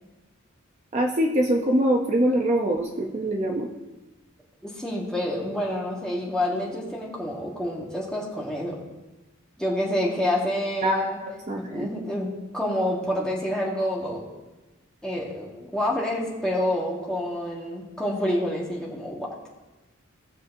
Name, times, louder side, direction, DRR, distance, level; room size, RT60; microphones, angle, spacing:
voice 1, 0.9-3.7 10.8-11.9, right 1 dB, 35° right, 1 dB, 0.7 m, -24 dB
voice 2, 4.6-8.8 9.6-11.2 11.5-14.2 15.0-19.3, left 1 dB, 5° left, -4 dB, 1.6 m, -28 dB
17.5 x 6.5 x 2.7 m, 1.1 s
head